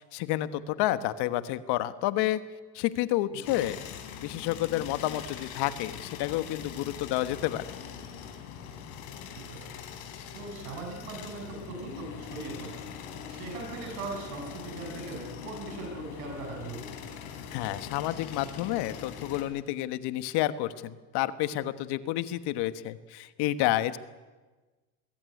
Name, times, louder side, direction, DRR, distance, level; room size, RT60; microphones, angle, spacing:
voice 1, 0.0-2.4 2.7-3.8 4.2-7.6 17.5-24.0, left 14 dB, 65° left, 12 dB, 1.4 m, -30 dB
sound 1, 3.4-19.4, left 8 dB, 85° left, 3.7 m, -42 dB
voice 2, 9.3-9.7 10.3-12.8 13.3-16.9, right 3 dB, 85° right, 3 dB, 6.7 m, -40 dB
21.5 x 15.5 x 9.8 m, 1.3 s
supercardioid pair, 90°, 42 cm